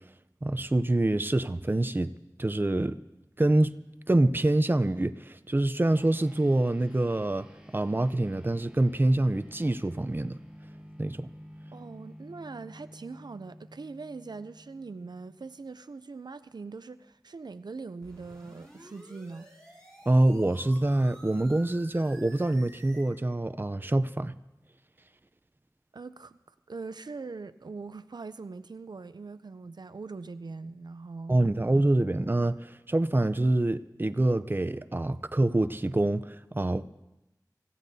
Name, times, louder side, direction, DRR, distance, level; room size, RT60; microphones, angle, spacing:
voice 1, 0.4-2.1 2.4-3.0 3.4-3.8 4.1-7.5 7.7-10.4 11.0-11.3 20.1-24.4 31.3-36.8, right 1 dB, 30° right, 0.5 m, -26 dB
sound 1, 5.8-15.6, equal, 10° right, 6.8 m, -51 dB
voice 2, 11.7-19.5 25.9-26.4 26.7-31.4, right 4 dB, 80° right, 0.4 m, -42 dB
sound 2, 18.0-23.0, right 1 dB, 10° left, 5.3 m, -52 dB
25.5 x 15.0 x 2.7 m
wide cardioid pair, 50°, 7 cm